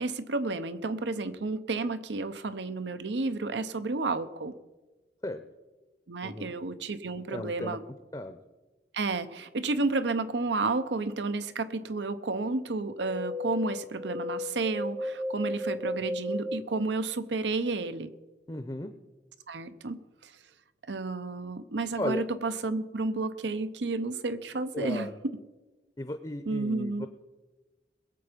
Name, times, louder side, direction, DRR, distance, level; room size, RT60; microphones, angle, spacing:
voice 1, 0.0-4.5 6.1-7.8 8.9-18.1 19.5-20.3 20.9-25.1 26.5-27.1, right 3 dB, 90° right, 13 dB, 0.8 m, -31 dB
voice 2, 6.2-6.5 7.3-7.8 8.1-8.4 18.5-18.9 22.0-22.2 24.7-25.2 26.0-27.1, left 1 dB, 20° left, 8 dB, 0.6 m, -35 dB
sound 1, 12.9-16.6, left 1 dB, 15° right, 0.7 m, -34 dB
21.0 x 8.0 x 5.2 m, 1.2 s
head